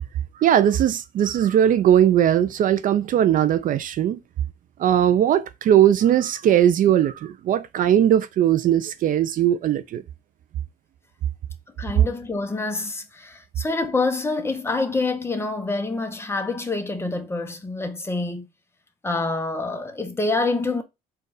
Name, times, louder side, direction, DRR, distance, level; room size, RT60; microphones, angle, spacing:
voice 1, 0.4-4.2 4.8-10.0, right 10 dB, 55° right, 0.5 m, -19 dB
voice 2, 11.8-18.5 19.0-20.8, left 3 dB, 15° left, 0.8 m, -26 dB
4.5 x 2.4 x 4.8 m
cardioid pair, 110°, 17 cm